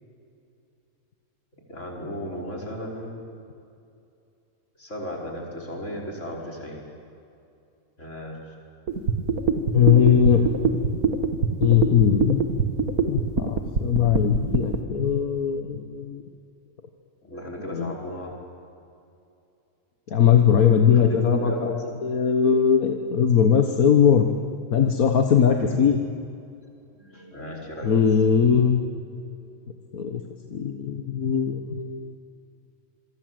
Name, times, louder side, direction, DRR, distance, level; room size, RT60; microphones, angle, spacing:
voice 1, 1.7-3.2 4.8-6.8 8.0-8.4 17.2-18.4 20.9-22.0 25.5-25.8 27.0-27.9, equal, 55° left, -2 dB, 5.7 m, -35 dB
sound 1, 8.9-14.8, right 5 dB, 90° right, 2.1 m, -23 dB
voice 2, 9.7-10.5 11.6-12.4 13.1-16.2 17.7-17.9 20.1-21.7 22.0-24.3 24.7-26.0 27.8-28.8 29.9-30.2 30.5-32.2, left 8 dB, 80° left, 4 dB, 1.8 m, -20 dB
27.5 x 24.0 x 7.9 m, 2.6 s
omnidirectional pair, 1.5 m